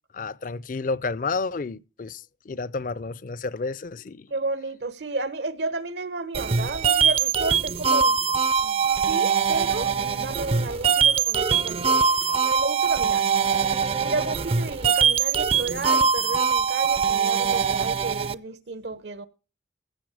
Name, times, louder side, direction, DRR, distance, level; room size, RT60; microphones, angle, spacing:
voice 1, 0.1-4.3, left 4 dB, 50° left, 0.5 m, -31 dB
voice 2, 4.3-8.3 8.6-12.0 12.4-13.3 14.0-19.3, right 3 dB, 75° right, 1.0 m, -32 dB
sound 1, 6.3-18.3, right 6 dB, 35° right, 0.5 m, -22 dB
15.5 x 6.7 x 4.9 m
head